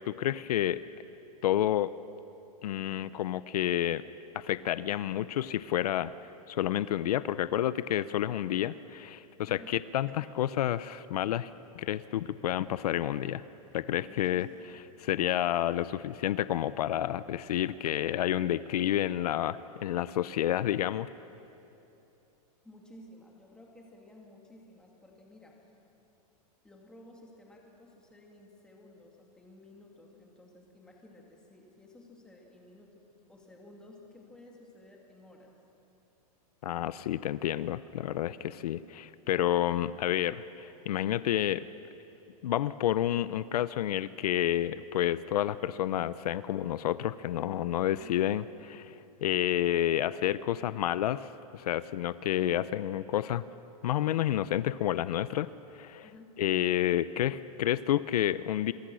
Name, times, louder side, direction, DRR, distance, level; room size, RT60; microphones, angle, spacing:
voice 1, 0.1-0.8 1.4-1.9 2.6-4.0 4.3-6.1 6.5-11.5 11.8-13.4 13.7-14.5 15.0-21.1 36.6-41.6 42.4-53.4 53.8-55.5 55.7-56.0 56.4-58.7, left 12 dB, 80° left, 15 dB, 0.7 m, -30 dB
voice 2, 9.5-9.8 14.1-14.5 22.6-25.6 26.6-35.6 47.9-48.2 56.0-56.4, left 1 dB, 5° left, -1 dB, 2.5 m, -54 dB
27.5 x 23.0 x 6.4 m, 2.9 s
supercardioid pair, 170°, 20 cm